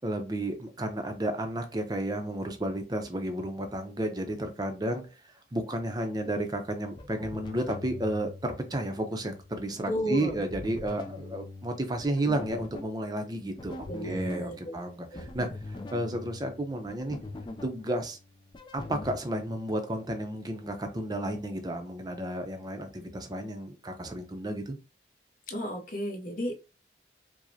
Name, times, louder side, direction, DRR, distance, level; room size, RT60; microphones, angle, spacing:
voice 1, 0.0-5.0 5.5-17.2 17.6-18.2 18.7-24.8, right 1 dB, 20° right, 6 dB, 0.6 m, -32 dB
sound 1, 6.6-19.2, left 2 dB, 25° left, 0.4 m, -43 dB
voice 2, 9.9-10.4 13.9-14.8 15.1-15.3 25.5-26.6, equal, 45° left, 2 dB, 0.8 m, -33 dB
4.8 x 2.1 x 2.7 m, 0.30 s
head